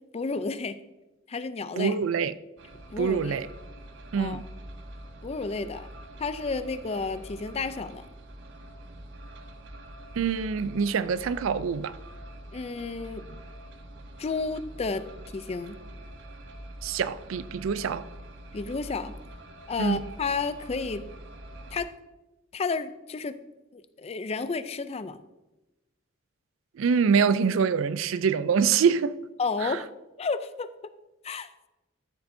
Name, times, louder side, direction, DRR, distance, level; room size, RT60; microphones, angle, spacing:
voice 1, 0.1-0.8 1.3-2.0 2.9-3.4 4.2-4.4 5.2-5.9 6.2-8.1 12.5-13.4 14.2-15.0 15.3-15.8 18.5-19.1 19.7-21.1 21.7-21.9 22.5-23.4 23.7-25.2 29.4-29.9 30.2-30.7 31.2-31.5, left 4 dB, 30° left, 0.4 m, -31 dB
voice 2, 1.8-2.3 3.0-3.5 4.1-4.4 10.2-12.0 16.8-18.0 19.8-20.0 26.8-29.2 29.6-29.8, right 6 dB, 85° right, 0.4 m, -25 dB
sound 1, 2.6-21.8, right 1 dB, 60° right, 0.8 m, -45 dB
13.0 x 6.9 x 2.7 m
head